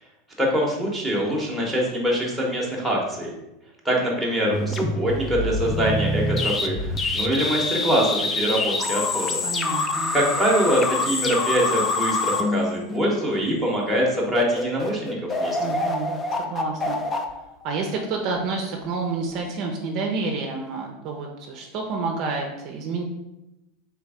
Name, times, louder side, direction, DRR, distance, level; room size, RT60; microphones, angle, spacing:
voice 1, 0.4-3.3 3.8-9.5 10.1-15.6, equal, ahead, -3 dB, 1.0 m, -24 dB
sound 1, 4.5-13.4 13.9-14.0 14.3-18.2, left 2 dB, 15° left, 0.4 m, -26 dB
voice 2, 9.4-10.1 15.6-16.1 16.4-17.0 17.6-23.0, right 4 dB, 40° right, 2 dB, 0.6 m, -29 dB
3.4 x 3.1 x 4.8 m, 0.94 s
supercardioid pair, 160°, 0 cm